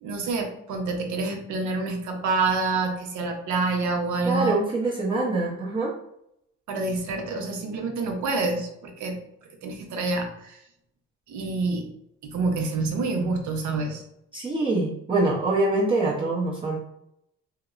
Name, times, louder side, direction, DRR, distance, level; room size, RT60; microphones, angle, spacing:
voice 1, 0.0-4.6 6.7-9.2 9.6-10.6 11.3-11.8 12.2-14.0, right 3 dB, 75° right, 4 dB, 0.6 m, -27 dB
voice 2, 4.2-5.9 14.3-16.8, right 2 dB, 15° right, -7 dB, 0.6 m, -24 dB
2.8 x 2.0 x 2.3 m, 0.79 s
cardioid pair, 90°, 30 cm